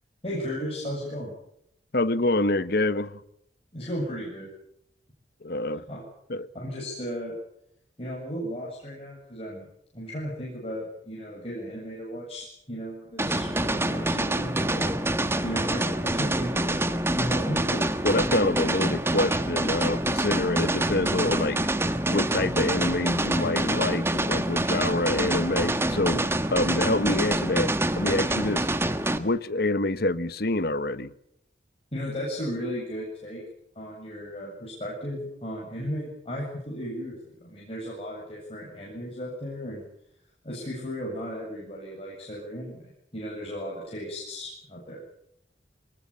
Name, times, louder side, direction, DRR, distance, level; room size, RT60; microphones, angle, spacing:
voice 1, 0.2-1.3 3.7-4.5 5.9-6.0 6.5-7.3 8.0-9.7 9.9-14.9 15.4-17.6 31.9-33.4 33.8-39.8 40.4-45.0, equal, 35° left, 7.6 m, -35 dB
voice 2, 1.9-3.2 5.4-5.8 6.3-6.5 17.7-31.1, left 2 dB, 60° left, 1.0 m, -27 dB
sound 1, 13.2-29.2, right 1 dB, 15° right, 1.4 m, -26 dB
23.5 x 20.5 x 8.6 m
head